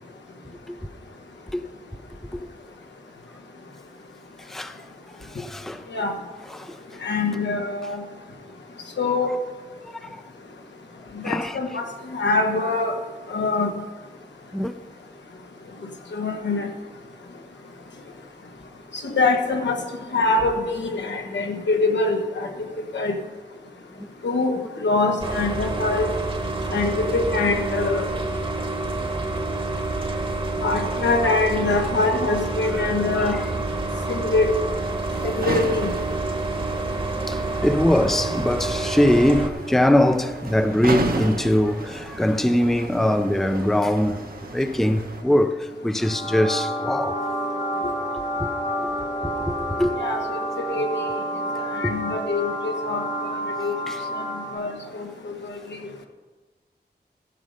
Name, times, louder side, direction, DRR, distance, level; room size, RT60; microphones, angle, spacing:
voice 1, 4.4-4.9 5.2-5.9 6.5-7.0 9.8-10.2 11.2-11.6 14.5-14.7 24.0-24.1 30.4-30.5 32.8-32.9 33.1-33.5 33.8-34.1 35.2-35.3 36.8-36.9 37.2-44.2 44.5-47.2 48.4-48.5 48.8-48.9 49.2-49.9 51.8-51.9 53.9-54.0, left 1 dB, ahead, 0.5 m, -22 dB
voice 2, 7.0-8.0 9.0-9.3 11.2-11.8 12.1-12.9 13.3-13.7 16.1-16.7 19.0-19.8 20.1-22.5 22.9-23.1 24.2-24.5 24.8-26.1 26.7-28.1 30.6-33.4 34.1-34.5 35.2-35.9 50.0-50.4 50.7-50.9 51.7-53.0 53.6-53.7 54.5-54.7 55.2-55.3, left 3 dB, 85° left, 1.4 m, -23 dB
sound 1, 25.2-39.5, right 2 dB, 30° right, 1.2 m, -28 dB
sound 2, 34.7-45.2, right 3 dB, 55° right, 1.0 m, -33 dB
sound 3, 45.9-54.8, right 1 dB, 70° left, 4.0 m, -29 dB
14.5 x 5.3 x 6.5 m
wide cardioid pair, 110°, 18 cm